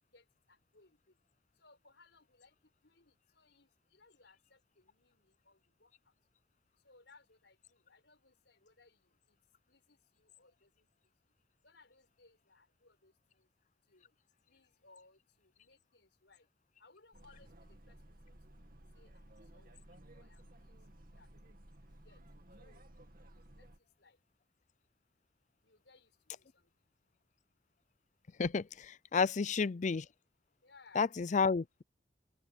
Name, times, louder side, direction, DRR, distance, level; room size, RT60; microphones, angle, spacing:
voice 1, 0.1-1.0 1.6-2.5 2.8-5.9 6.8-9.0 9.3-9.4 9.7-10.9 11.6-13.5 13.9-14.1 14.5-16.5 16.8-18.0 18.3-18.4 19.0-19.8 20.1-20.8 21.1-21.3 21.9-22.2 22.6-22.8 23.6-23.7 24.0-24.2 25.6-26.7 29.2-29.5 30.6-31.1, left 3 dB, 80° left, 5.6 m, -65 dB
sound 1, 17.1-23.8, right 1 dB, 55° right, 2.3 m, -57 dB
voice 2, 29.1-30.0 31.0-31.8, left 5 dB, 40° left, 0.5 m, -30 dB
open air
head